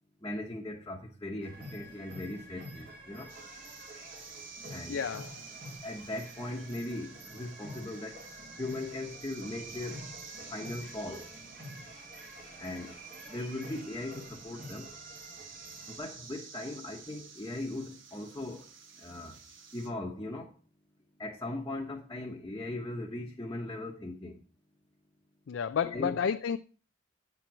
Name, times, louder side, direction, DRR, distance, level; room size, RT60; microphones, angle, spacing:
voice 1, 0.2-3.3 4.7-5.0 5.8-8.2 8.6-10.0 10.5-11.3 12.6-12.9 13.3-14.9 15.9-18.7 19.0-19.4 19.7-20.5 21.2-24.3 25.8-26.2, left 2 dB, 20° left, 1.1 m, -39 dB
sound 1, 1.4-16.0, right 1 dB, 50° right, 2.2 m, -48 dB
sound 2, 3.3-19.9, right 5 dB, 75° right, 1.5 m, -51 dB
voice 2, 4.9-5.3 25.5-26.6, left 7 dB, 70° left, 0.4 m, -31 dB
8.8 x 4.5 x 6.1 m
head